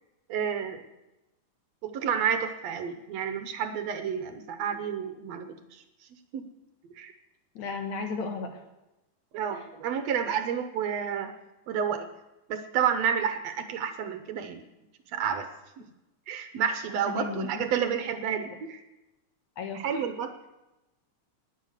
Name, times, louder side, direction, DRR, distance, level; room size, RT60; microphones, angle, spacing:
voice 1, 0.3-0.8 1.8-5.8 6.3-6.4 7.0-7.1 9.3-11.3 11.7-12.1 12.5-14.6 15.1-15.5 16.3-18.8 19.7-20.5, right 7 dB, 70° right, 8 dB, 1.9 m, -30 dB
voice 2, 7.6-8.6 9.6-9.7 17.1-17.6 18.3-18.4 19.6-20.0, left 4 dB, 70° left, 5 dB, 2.8 m, -35 dB
19.5 x 7.4 x 6.5 m, 0.98 s
omnidirectional pair, 3.4 m